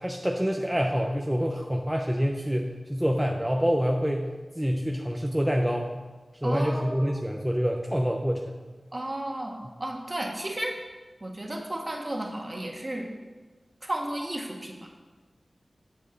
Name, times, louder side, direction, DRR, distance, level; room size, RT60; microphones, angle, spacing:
voice 1, 0.0-5.9 6.4-8.6, equal, 10° right, 1 dB, 0.8 m, -27 dB
voice 2, 6.4-7.2 8.9-10.7 11.2-13.1 13.8-14.9, right 1 dB, 35° right, 1 dB, 1.6 m, -33 dB
9.7 x 7.6 x 4.0 m, 1.3 s
wide cardioid pair, 55°, 0 cm